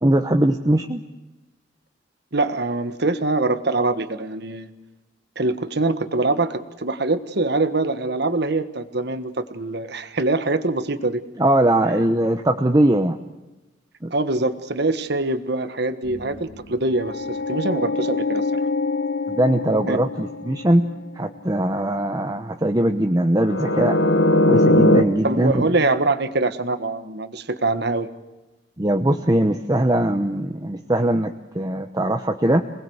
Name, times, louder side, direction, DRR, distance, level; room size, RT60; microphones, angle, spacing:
voice 1, 0.0-1.0 11.4-13.2 14.0-14.1 19.3-20.9 21.2-24.0 24.5-25.7 28.8-31.3 31.5-32.6, right 1 dB, 20° right, 5 dB, 1.0 m, -20 dB
voice 2, 2.3-4.7 5.4-11.2 14.1-18.4 19.9-20.0 25.2-28.1, right 2 dB, 60° right, 11 dB, 1.5 m, -23 dB
sound 1, 16.0-20.9 23.4-25.0, left 1 dB, 70° left, 1.4 m, -21 dB
27.5 x 20.0 x 8.1 m, 1.1 s
head